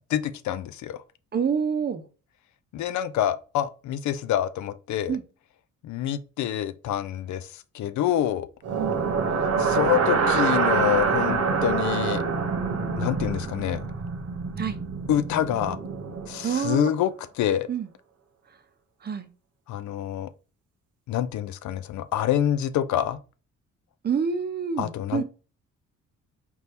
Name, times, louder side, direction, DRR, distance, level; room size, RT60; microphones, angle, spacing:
voice 1, 0.1-1.0 2.7-5.2 5.8-8.5 9.4-12.2 12.9-13.8 15.1-15.8 16.3-17.7 19.7-20.3 21.1-23.2 24.8-25.2, left 11 dB, 70° left, 0.5 m, -27 dB
voice 2, 1.3-2.0 5.1-5.2 8.8-9.0 14.6-14.8 16.4-16.9 17.7-17.9 19.0-19.3 24.0-25.2, right 6 dB, 35° right, 0.7 m, -27 dB
sound 1, 8.6-16.7, right 5 dB, 55° right, 1.0 m, -26 dB
4.4 x 2.7 x 3.4 m
cardioid pair, 90°, 30 cm